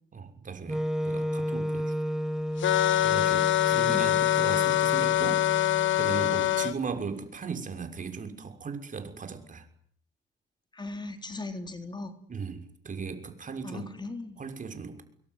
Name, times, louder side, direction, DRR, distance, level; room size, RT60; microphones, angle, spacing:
voice 1, 0.1-1.9 3.0-5.4 5.9-9.7 12.3-13.9 14.4-15.0, right 5 dB, 40° right, 7 dB, 6.2 m, -37 dB
Wind instrument woodwind instrument, 0.7-6.7, equal, ahead, 1.5 m, -33 dB
sound 1, 2.6-6.7, left 14 dB, 75° left, 1.5 m, -24 dB
voice 2, 10.7-12.2 13.6-14.4, left 2 dB, 20° left, 7 dB, 3.7 m, -38 dB
26.0 x 22.5 x 9.5 m, 0.62 s
cardioid pair, 90°, 20 cm